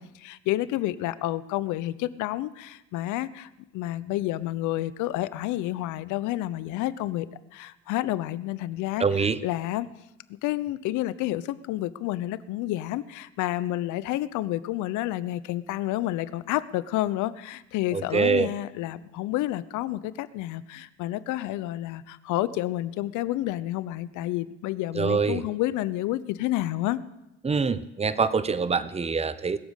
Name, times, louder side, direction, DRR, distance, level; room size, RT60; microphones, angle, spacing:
voice 1, 0.0-7.3 7.5-9.0 9.4-9.9 10.4-27.0, left 15 dB, 65° left, 17 dB, 0.8 m, -29 dB
voice 2, 9.0-9.4 17.9-18.5 24.9-25.4 27.4-29.6, right 5 dB, 20° right, 15 dB, 0.9 m, -25 dB
20.5 x 7.1 x 8.1 m, 0.93 s
hypercardioid pair, 75°, 32 cm